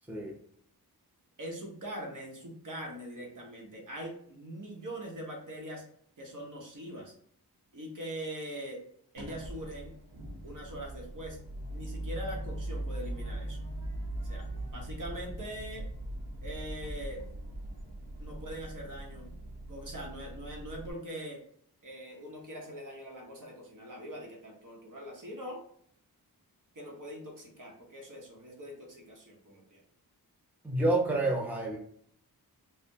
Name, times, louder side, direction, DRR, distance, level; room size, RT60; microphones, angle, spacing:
voice 1, 1.4-5.8 6.2-7.1 7.7-8.8 9.1-9.9 10.4-11.4 11.7-13.6 14.2-14.5 14.7-15.9 16.4-17.2 18.2-19.3 19.7-21.4 21.8-25.6 26.7-29.8, equal, 55° right, 0 dB, 1.0 m, -42 dB
sound 1, 9.2-20.9, right 1 dB, 85° right, 0.8 m, -40 dB
voice 2, 30.6-31.8, right 2 dB, 5° right, -1 dB, 0.6 m, -28 dB
3.2 x 2.1 x 2.7 m, 0.64 s
cardioid pair, 70°, 38 cm